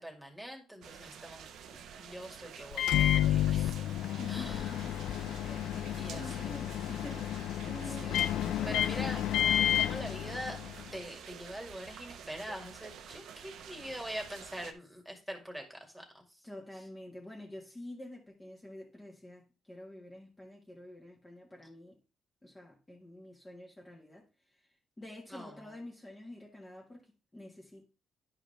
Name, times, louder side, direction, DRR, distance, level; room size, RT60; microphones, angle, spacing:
voice 1, 0.0-3.8 4.3-4.6 5.5-5.6 5.9-6.6 8.0-9.4 9.7-10.6 10.9-16.2 25.3-25.6, equal, 5° right, 2.2 m, -44 dB
sound 1, 0.8-14.7, right 7 dB, 80° right, 0.9 m, -49 dB
Microwave oven, 2.7-10.9, left 11 dB, 80° left, 0.3 m, -31 dB
voice 2, 4.2-8.9 16.4-22.0 22.4-24.3 25.0-27.8, left 1 dB, 20° left, 1.8 m, -48 dB
10.5 x 4.9 x 3.4 m
cardioid pair, 90°, 0 cm